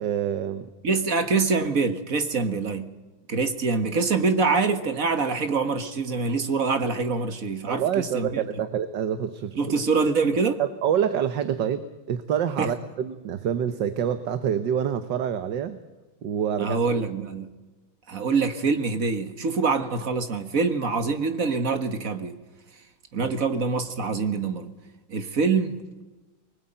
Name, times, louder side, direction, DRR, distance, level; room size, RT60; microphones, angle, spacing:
voice 1, 0.0-0.7 7.7-9.8 10.6-15.8 16.2-16.8 23.2-23.3, right 9 dB, 65° right, 11 dB, 1.7 m, -27 dB
voice 2, 0.8-2.9 3.3-8.4 9.6-10.6 12.6-12.7 16.6-17.5 18.1-22.3 23.1-24.7 25.1-25.8, right 4 dB, 45° right, 9 dB, 1.7 m, -25 dB
24.0 x 20.0 x 9.0 m, 1.2 s
omnidirectional pair, 2.2 m